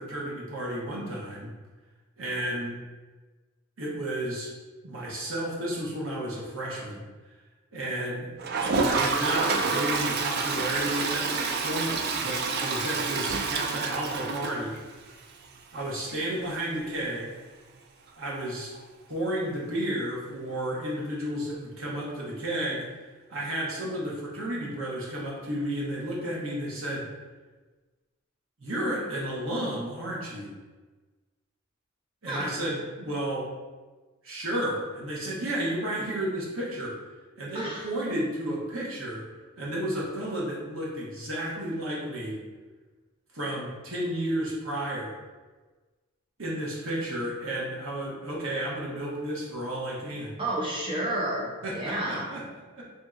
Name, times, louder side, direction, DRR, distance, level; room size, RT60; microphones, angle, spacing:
voice 1, 0.0-1.5 2.2-2.8 3.8-4.5 4.8-7.0 7.7-8.3 8.8-11.3 11.6-14.7 15.7-17.3 18.2-18.7 19.1-22.8 23.3-27.1 28.6-30.5 32.2-33.5 34.2-37.0 37.4-39.2 39.6-42.4 43.3-45.1 46.4-50.4 51.6-52.4 52.7-52.8, right 1 dB, 75° right, -5 dB, 1.1 m, -32 dB
Toilet flush, 8.4-15.1 15.4-15.5 15.7-15.8 16.1-16.2 18.7-18.8 20.1-20.2, right 4 dB, 50° right, 0.4 m, -28 dB
voice 2, 37.5-37.9 50.4-52.3, right 1 dB, 25° right, -3 dB, 0.8 m, -31 dB
3.5 x 2.8 x 3.7 m, 1.3 s
head